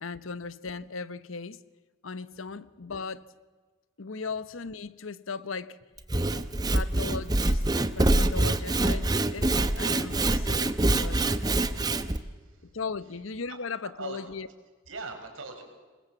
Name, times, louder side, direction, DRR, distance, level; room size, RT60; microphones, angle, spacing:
voice 1, 0.0-1.6 2.0-3.2 4.0-5.8 6.7-7.6 8.0-9.5 9.8-11.2 12.7-14.5, left 4 dB, 90° left, 15 dB, 0.9 m, -37 dB
Sawing / Wood, 6.0-12.2, right 2 dB, 20° right, 0.8 m, -25 dB
voice 2, 12.2-12.7 13.0-13.2 13.5-13.6 14.0-14.2 14.9-15.6, right 3 dB, 85° right, 4 dB, 5.2 m, -43 dB
26.5 x 21.5 x 7.3 m, 1.4 s
head